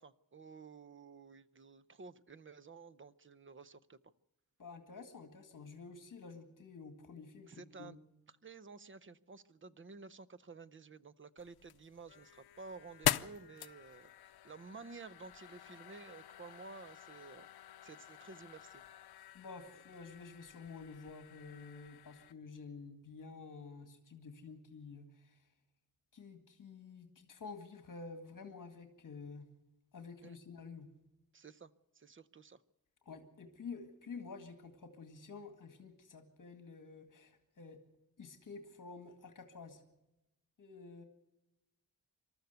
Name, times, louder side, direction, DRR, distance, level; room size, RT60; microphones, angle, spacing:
voice 1, 0.0-4.0 7.5-8.0 8.4-17.5 17.8-18.8 30.2-30.4 31.3-32.6, right 4 dB, 35° right, 15 dB, 0.7 m, -53 dB
voice 2, 4.6-8.0 19.3-25.4 26.1-29.5 29.9-30.9 33.1-37.8 38.2-39.8 40.6-41.0, left 4 dB, 55° left, 7 dB, 2.1 m, -50 dB
sound 1, 11.4-22.3, left 11 dB, 90° left, 0.6 m, -43 dB
26.0 x 13.5 x 8.1 m, 0.95 s
wide cardioid pair, 170°, 37 cm